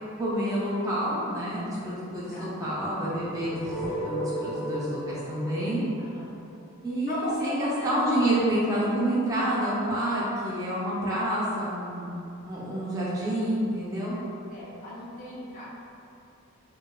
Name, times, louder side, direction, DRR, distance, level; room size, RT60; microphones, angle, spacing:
voice 1, 0.2-5.8 6.8-14.2, right 1 dB, 15° right, -8 dB, 0.4 m, -28 dB
voice 2, 2.3-2.7 6.0-6.4 7.1-8.2 11.0-11.2 14.5-15.7, left 1 dB, 35° left, -7 dB, 0.6 m, -37 dB
sound 1, 2.8-6.9, right 1 dB, 90° left, 0.4 m, -35 dB
3.0 x 2.2 x 2.3 m, 2.6 s
head